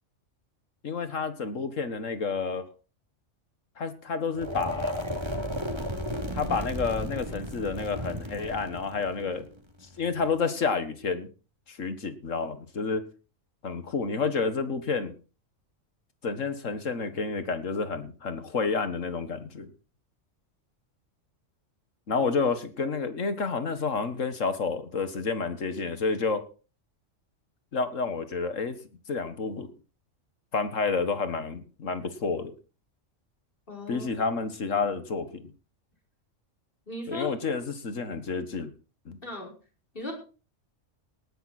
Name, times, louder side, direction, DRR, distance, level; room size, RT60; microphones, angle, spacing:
voice 1, 0.8-2.6 3.8-5.1 6.3-9.5 10.0-11.3 11.7-13.0 13.6-15.1 16.2-19.7 22.1-26.4 27.7-28.8 29.1-29.7 30.5-32.5 33.9-35.5 37.1-38.7 39.1-39.2, left 4 dB, 85° left, 10 dB, 2.0 m, -30 dB
sound 1, 4.3-10.3, equal, 20° right, 2.8 m, -34 dB
voice 2, 33.7-34.1 36.9-37.3 39.2-39.5 39.9-40.1, left 2 dB, 45° left, 0 dB, 5.5 m, -37 dB
18.5 x 11.0 x 4.3 m, 0.37 s
omnidirectional pair, 1.3 m